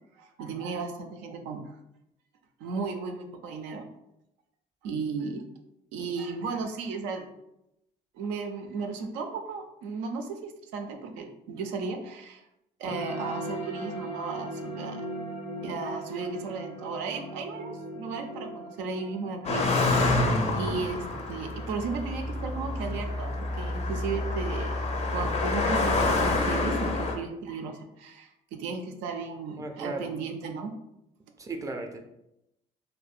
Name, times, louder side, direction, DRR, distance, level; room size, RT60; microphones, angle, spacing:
voice 1, 0.2-1.8 2.6-3.9 4.8-5.4 5.9-7.3 8.1-12.4 12.8-15.1 15.6-20.0 20.6-24.8 25.1-30.7, right 4 dB, 80° right, 5 dB, 0.4 m, -35 dB
sound 1, 12.9-23.8, right 1 dB, 80° left, 0.8 m, -40 dB
Car passing by, 19.4-27.2, left 2 dB, 40° left, 0.5 m, -27 dB
voice 2, 29.6-30.1 31.4-32.0, right 2 dB, 20° right, 4 dB, 0.4 m, -36 dB
2.7 x 2.1 x 2.4 m, 0.84 s
supercardioid pair, 70°, 18 cm